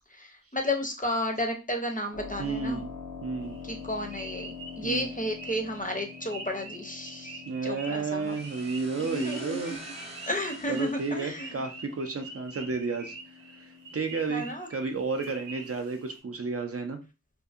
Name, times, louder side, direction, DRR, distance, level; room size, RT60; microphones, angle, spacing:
voice 1, 0.1-2.8 3.6-8.4 9.0-9.9 10.2-11.6 14.3-14.7, left 1 dB, 25° left, 3 dB, 0.5 m, -33 dB
Keyboard (musical), 2.1-14.6, left 5 dB, 85° left, 0.5 m, -46 dB
voice 2, 2.4-2.9 3.2-3.6 4.8-5.1 7.5-9.8 10.7-13.2 13.6-17.0, right 4 dB, 50° right, 6 dB, 0.4 m, -32 dB
sound 1, 3.4-16.2, right 3 dB, 90° right, 0.8 m, -46 dB
sound 2, 8.2-11.9, right 1 dB, 20° right, 0.8 m, -46 dB
2.6 x 2.5 x 2.4 m, 0.29 s
wide cardioid pair, 40°, 32 cm